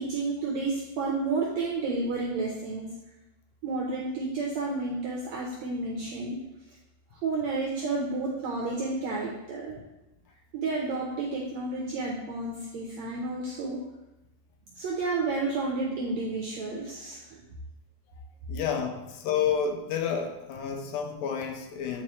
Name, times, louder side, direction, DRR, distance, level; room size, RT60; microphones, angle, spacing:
voice 1, 0.0-2.9 3.6-6.4 7.2-9.8 10.5-13.8 14.7-17.2, right 3 dB, 75° right, -3 dB, 1.6 m, -31 dB
voice 2, 18.5-22.0, left 7 dB, 80° left, 4 dB, 2.3 m, -30 dB
10.0 x 4.3 x 3.1 m, 0.99 s
omnidirectional pair, 4.2 m